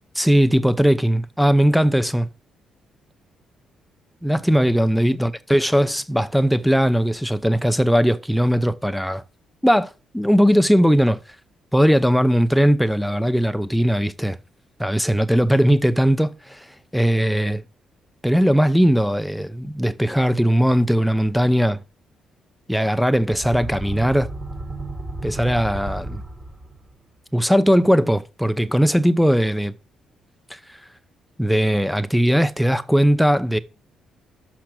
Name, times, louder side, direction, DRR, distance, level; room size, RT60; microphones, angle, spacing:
voice 1, 0.1-2.3 4.2-9.2 9.6-11.2 11.7-14.4 14.8-16.7 16.9-17.6 18.2-21.8 22.7-24.3 25.2-26.2 27.3-29.7 30.5-30.6 31.4-33.6, equal, ahead, 0.6 m, -19 dB
sound 1, 23.2-27.0, right 2 dB, 30° right, 1.9 m, -33 dB
6.0 x 5.8 x 6.0 m
cardioid pair, 90°, 0 cm